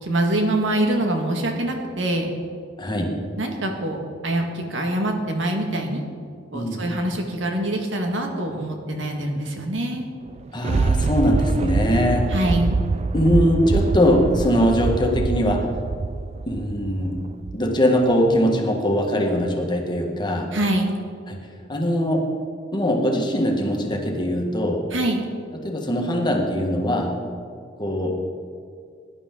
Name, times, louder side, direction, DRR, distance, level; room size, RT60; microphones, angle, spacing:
voice 1, 0.0-2.3 3.4-6.0 6.5-10.1 12.3-12.8 20.5-20.9 24.9-25.2, right 1 dB, 85° right, 3 dB, 1.7 m, -24 dB
voice 2, 2.8-3.2 6.5-6.8 10.5-12.3 13.1-15.7 16.5-17.2 17.5-20.5 21.3-21.4 21.7-22.2 22.7-24.8 25.5-27.1 27.8-28.2, equal, 25° left, 1 dB, 1.5 m, -21 dB
Thunder, 10.2-17.8 18.3-18.4, right 4 dB, 35° right, 0.3 m, -25 dB
17.0 x 11.0 x 3.8 m, 2.3 s
head